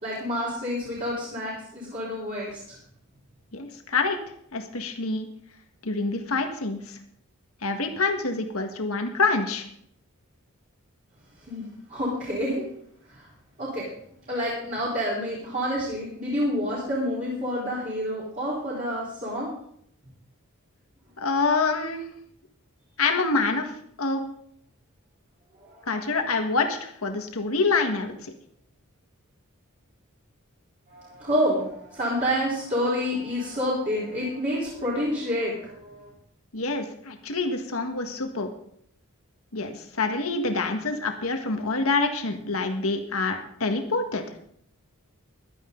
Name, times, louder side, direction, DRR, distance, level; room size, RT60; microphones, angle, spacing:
voice 1, 0.0-2.8 11.5-12.6 13.1-13.2 13.6-13.8 14.3-19.5 25.6-25.9 30.9-36.1, equal, 35° right, -8 dB, 4.2 m, -28 dB
voice 2, 3.5-4.2 4.5-5.3 5.8-7.0 7.6-9.7 21.2-22.0 23.0-23.7 24.0-24.2 25.9-28.3 36.5-38.5 39.5-44.2, left 3 dB, 75° left, 5 dB, 1.7 m, -26 dB
15.5 x 11.5 x 3.9 m, 0.67 s
head